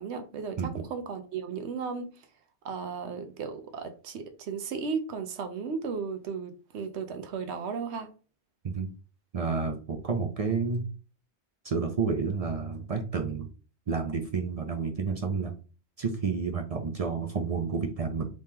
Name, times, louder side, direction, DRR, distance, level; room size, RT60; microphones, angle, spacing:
voice 1, 0.0-2.1 2.6-8.1, right 5 dB, 80° right, 0.9 m, -35 dB
voice 2, 9.3-10.9 11.6-13.5 13.9-15.6 16.0-18.3, right 5 dB, 50° right, 0.4 m, -30 dB
3.1 x 2.8 x 3.5 m
omnidirectional pair, 1.1 m